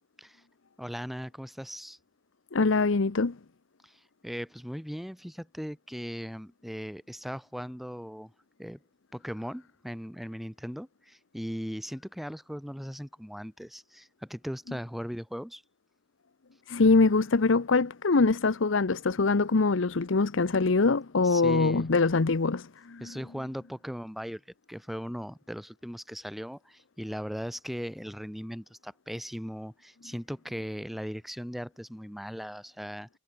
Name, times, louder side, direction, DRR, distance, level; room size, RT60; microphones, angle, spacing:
voice 1, 0.8-2.0 3.8-3.9 4.2-8.3 8.6-8.8 9.1-15.6 21.2-21.9 23.0-24.4 24.7-33.1, equal, ahead, 4.8 m, -38 dB
voice 2, 2.5-3.4 16.7-23.2, left 3 dB, 70° left, 0.8 m, -24 dB
head